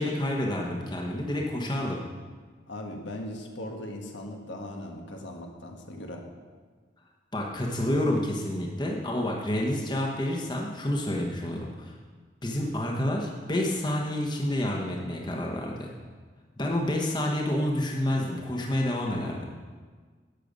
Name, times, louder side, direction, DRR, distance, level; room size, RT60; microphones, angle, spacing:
voice 1, 0.0-2.0 7.3-11.9 12.4-15.9 16.6-19.5, left 1 dB, 25° left, -1 dB, 1.2 m, -29 dB
voice 2, 2.7-6.3, left 1 dB, 80° left, 2 dB, 1.6 m, -39 dB
11.5 x 7.5 x 5.3 m, 1.5 s
head